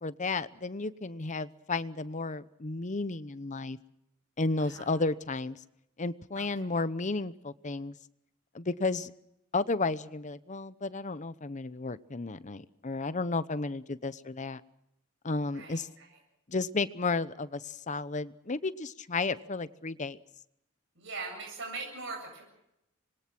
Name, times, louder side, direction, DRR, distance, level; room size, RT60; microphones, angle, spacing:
voice 1, 0.0-3.8 4.4-5.6 6.0-7.9 8.5-9.1 9.5-14.6 15.2-15.9 16.5-20.2, left 3 dB, 35° left, 14 dB, 0.9 m, -33 dB
voice 2, 6.4-6.7 15.5-16.1 21.0-22.4, right 3 dB, 70° right, 1 dB, 7.8 m, -41 dB
25.5 x 21.5 x 6.1 m, 0.84 s
head